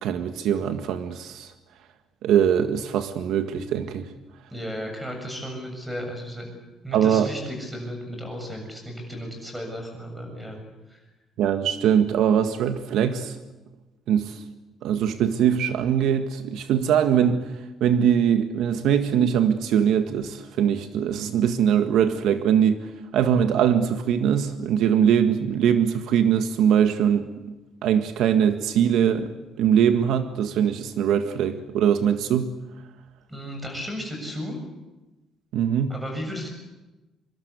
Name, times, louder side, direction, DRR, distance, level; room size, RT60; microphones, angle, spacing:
voice 1, 0.0-1.5 2.2-4.1 6.9-7.3 11.4-13.4 14.1-14.4 14.8-17.5 17.8-22.9 23.1-27.3 27.8-29.3 29.6-32.5 35.5-35.9, right 8 dB, 70° right, 7 dB, 1.8 m, -22 dB
voice 2, 4.5-6.6 6.8-10.6 10.9-11.0 33.3-34.6 35.9-36.5, equal, 5° right, 4 dB, 7.2 m, -34 dB
25.5 x 24.5 x 8.3 m, 1.1 s
cardioid pair, 170°, 0 cm